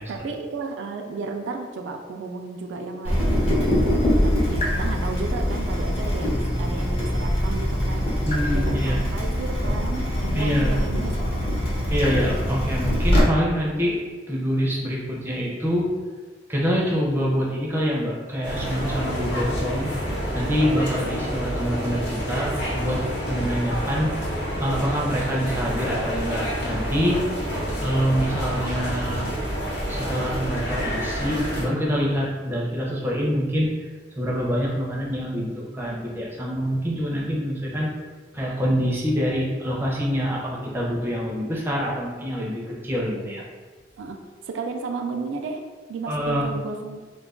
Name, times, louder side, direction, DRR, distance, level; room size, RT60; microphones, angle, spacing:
voice 1, 0.1-3.7 4.2-8.1 8.5-11.6 27.5-27.7 43.0-43.4 44.0-44.2 44.4-45.6 45.9-47.0, right 4 dB, 85° right, 4 dB, 0.3 m, -33 dB
Water tap faucet / Drip, 3.0-13.2, equal, 35° left, 0.7 m, -23 dB
voice 2, 8.3-9.0 10.3-10.8 11.9-14.0 14.3-15.9 16.5-19.9 20.3-24.3 24.6-27.2 27.8-29.3 29.9-33.7 34.2-37.9 38.3-43.4 46.1-46.5, equal, 10° right, -4 dB, 0.4 m, -25 dB
sound 1, 18.4-31.6, equal, 70° left, 0.9 m, -28 dB
2.3 x 2.2 x 3.6 m, 1.4 s
head